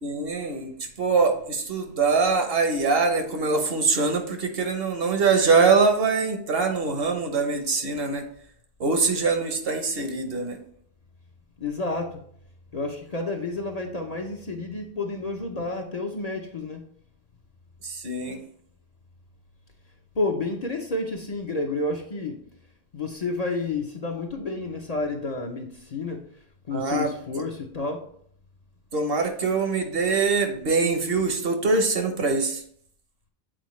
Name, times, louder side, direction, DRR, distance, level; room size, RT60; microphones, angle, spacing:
voice 1, 0.0-8.2 8.8-10.6 17.8-18.4 26.7-27.1 27.4-27.5 28.9-32.6, right 4 dB, 60° right, 5 dB, 1.1 m, -23 dB
voice 2, 11.6-12.2 12.7-16.9 20.1-22.4 22.9-26.3 26.7-28.1, left 3 dB, 45° left, 2 dB, 0.6 m, -30 dB
7.7 x 4.2 x 3.1 m, 0.62 s
omnidirectional pair, 1.1 m